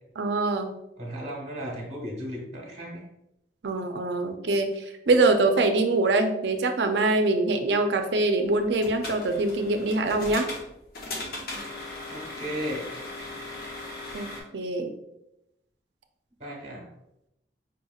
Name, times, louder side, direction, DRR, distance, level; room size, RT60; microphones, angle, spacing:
voice 1, 0.2-0.7 3.6-10.5 14.1-14.9, right 2 dB, 75° right, 6 dB, 0.5 m, -24 dB
voice 2, 1.0-3.1 12.1-12.9 16.4-16.9, equal, 40° right, -2 dB, 1.0 m, -35 dB
sound 1, 8.6-14.4, left 2 dB, 55° left, 0.8 m, -38 dB
5.0 x 2.8 x 2.3 m, 0.84 s
head